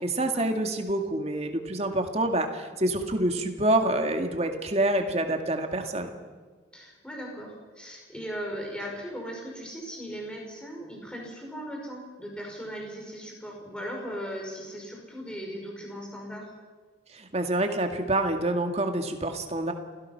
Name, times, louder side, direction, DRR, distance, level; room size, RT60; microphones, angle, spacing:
voice 1, 0.0-6.2 17.1-19.7, right 1 dB, 35° right, 5 dB, 2.0 m, -27 dB
voice 2, 6.7-16.5, equal, 5° left, -1 dB, 5.6 m, -38 dB
27.0 x 17.5 x 5.9 m, 1.5 s
head